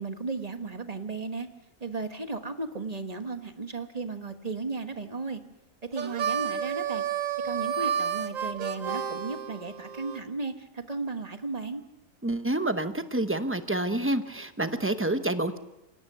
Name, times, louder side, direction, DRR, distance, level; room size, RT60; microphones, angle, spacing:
voice 1, 0.0-1.5 1.8-5.4 5.9-7.0 7.4-11.8, right 3 dB, 30° right, 7 dB, 1.4 m, -35 dB
Harmonica, 5.9-10.2, right 8 dB, 80° right, 1.5 m, -31 dB
voice 2, 12.2-15.6, right 1 dB, 10° right, 9 dB, 0.8 m, -28 dB
25.5 x 17.5 x 6.7 m, 0.96 s
omnidirectional pair, 1.4 m